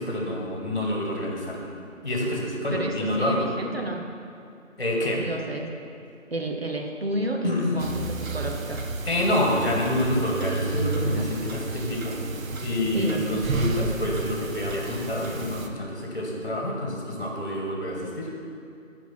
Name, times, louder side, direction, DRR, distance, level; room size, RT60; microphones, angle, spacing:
voice 1, 0.0-1.7 2.0-3.4 4.8-5.3 7.4-7.8 9.0-12.2 12.6-18.3, left 1 dB, 45° left, -1 dB, 1.4 m, -27 dB
voice 2, 2.7-4.1 5.1-5.7 6.3-8.8 12.9-13.3, right 1 dB, 50° right, 2 dB, 0.8 m, -30 dB
sound 1, 7.8-15.7, right 3 dB, 85° right, 0.8 m, -31 dB
11.5 x 4.6 x 4.3 m, 2.5 s
figure-of-eight pair, 175°, 39 cm